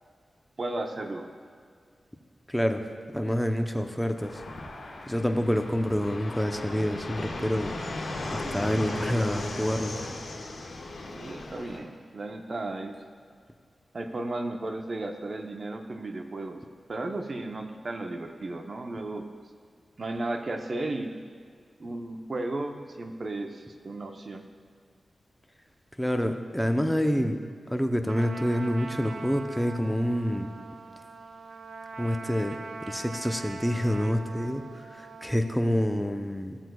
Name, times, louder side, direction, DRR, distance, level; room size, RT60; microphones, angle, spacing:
voice 1, 0.6-1.3 11.1-13.0 13.9-16.6 16.9-19.3 20.0-21.1 21.8-24.4, right 2 dB, 50° right, 4 dB, 0.8 m, -34 dB
voice 2, 2.5-2.8 3.1-4.4 5.1-7.8 8.3-10.1 26.0-27.4 27.7-30.5 32.0-36.6, equal, 5° left, 5 dB, 0.7 m, -27 dB
Fixed-wing aircraft airplane, 4.2-11.8, left 2 dB, 75° left, 1.4 m, -36 dB
Trumpet, 28.1-35.4, right 4 dB, 70° right, 0.5 m, -42 dB
15.0 x 7.6 x 2.3 m, 2.1 s
cardioid pair, 60°, 0 cm